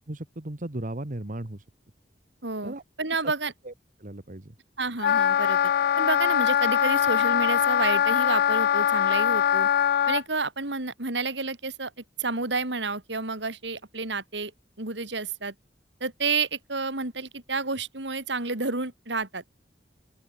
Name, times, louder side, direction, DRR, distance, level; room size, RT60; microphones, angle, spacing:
voice 1, 0.1-1.6 2.6-2.8 3.2-3.3 3.6-3.7 4.0-4.5, right 1 dB, 45° right, 1.6 m, -36 dB
voice 2, 2.4-3.5 4.8-5.6 6.0-9.7 10.1-11.9 12.2-14.5 14.8-15.5 16.0-19.5, right 3 dB, 75° right, 3.6 m, -30 dB
Wind instrument woodwind instrument, 5.0-10.2, left 9 dB, 55° left, 0.3 m, -22 dB
open air
head